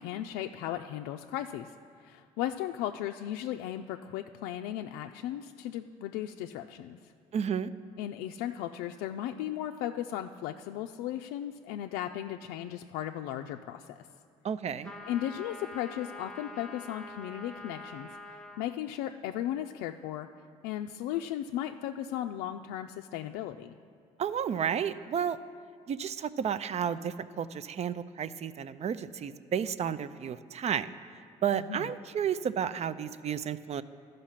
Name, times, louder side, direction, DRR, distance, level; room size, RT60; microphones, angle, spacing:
voice 1, 0.0-7.1 8.0-14.0 15.1-20.3 20.6-23.7 31.5-31.9, left 12 dB, 80° left, 5 dB, 0.4 m, -36 dB
voice 2, 7.3-7.7 14.4-14.9 24.2-25.4 25.9-30.9 31.4-33.8, right 8 dB, 45° right, 16 dB, 0.5 m, -32 dB
sound 1, 14.8-18.7, left 2 dB, 5° left, 1.0 m, -45 dB
13.5 x 5.2 x 5.7 m, 2.2 s
supercardioid pair, 65°, 15 cm